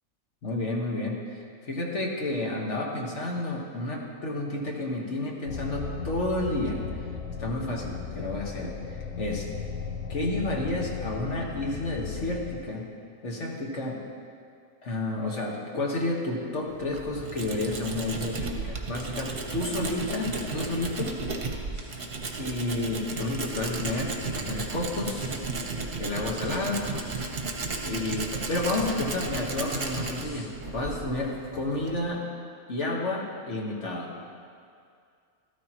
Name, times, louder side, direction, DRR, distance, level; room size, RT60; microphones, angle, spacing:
voice 1, 0.4-6.8 7.4-8.7 9.2-9.5 10.1-12.9 13.2-14.0 14.8-21.1 22.4-25.3 26.0-26.9 27.8-32.2 32.7-34.1, left 2 dB, 50° left, -2 dB, 1.7 m, -31 dB
sound 1, 5.4-12.6, left 6 dB, 70° left, 1.1 m, -36 dB
Tools, 16.7-32.1, right 3 dB, 45° right, 1.1 m, -34 dB
sound 2, 21.7-22.1 23.3-23.7 25.1-25.5 26.4-27.3 28.5-28.9 29.6-30.6, left 3 dB, 85° left, 1.7 m, -51 dB
13.0 x 13.0 x 3.0 m, 2.3 s
omnidirectional pair, 1.5 m